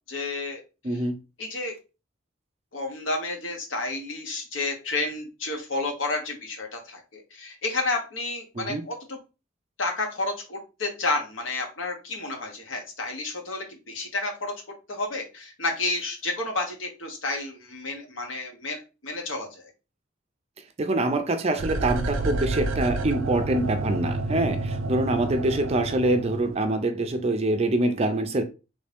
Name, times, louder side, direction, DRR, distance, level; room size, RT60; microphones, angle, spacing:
voice 1, 0.1-0.6 1.4-1.7 2.7-9.2 9.8-14.5 14.9-19.7, left 2 dB, 75° left, 1.1 m, -31 dB
voice 2, 0.8-1.2 8.6-8.8 20.8-28.4, right 2 dB, 30° right, 0.5 m, -25 dB
sound 1, 21.6-26.8 27.1-27.2, right 2 dB, 85° right, 0.5 m, -30 dB
3.2 x 2.7 x 3.4 m
head